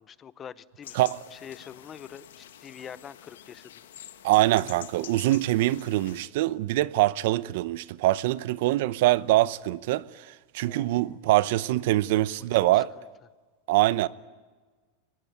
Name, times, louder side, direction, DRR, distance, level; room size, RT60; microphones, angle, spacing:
voice 1, 0.0-1.0 1.3-3.7 10.6-11.2 12.6-13.0, left 8 dB, 25° left, 0.7 m, -45 dB
sound 1, 0.8-6.3, left 11 dB, 85° left, 1.6 m, -47 dB
voice 2, 4.2-12.9 13.7-14.1, right 16 dB, 65° right, 0.7 m, -24 dB
23.0 x 20.0 x 9.5 m
supercardioid pair, 140°, 0 cm